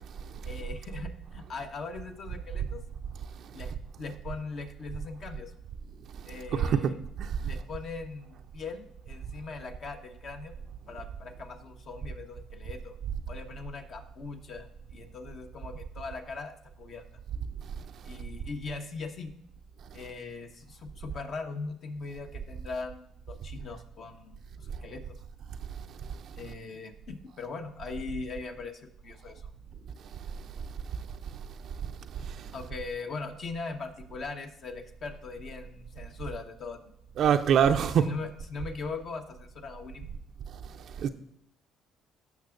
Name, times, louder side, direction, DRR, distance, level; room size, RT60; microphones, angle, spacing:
voice 1, 0.4-2.8 3.5-3.7 4.0-5.5 6.3-7.0 7.4-10.5 10.9-12.9 13.3-17.0 18.0-19.3 19.9-25.0 26.3-28.7 29.0-29.5 32.5-36.8 37.7-40.1, left 4 dB, 55° left, 1.2 m, -40 dB
voice 2, 6.5-7.3 32.2-32.5 37.2-38.1 41.0-41.1, right 8 dB, 60° right, 0.4 m, -25 dB
15.0 x 6.0 x 2.5 m
supercardioid pair, 65°, 0 cm